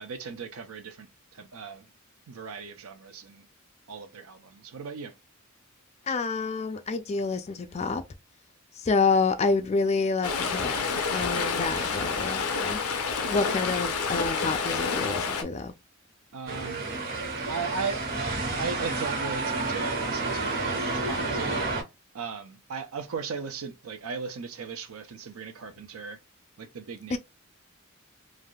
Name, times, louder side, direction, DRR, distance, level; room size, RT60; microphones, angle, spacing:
voice 1, 0.0-1.9 2.3-3.4 3.9-5.1 16.3-16.8 17.5-18.0 18.6-21.5 22.1-26.2 26.6-27.2, right 5 dB, 80° right, 0.6 m, -37 dB
voice 2, 6.1-8.0 8.8-12.8 13.3-15.7 27.1-27.2, left 4 dB, 30° left, 0.3 m, -28 dB
Stream, 10.2-15.4, left 5 dB, 85° left, 0.6 m, -29 dB
sound 1, 16.5-21.8, right 3 dB, 45° right, 1.4 m, -30 dB
3.3 x 2.5 x 2.3 m
head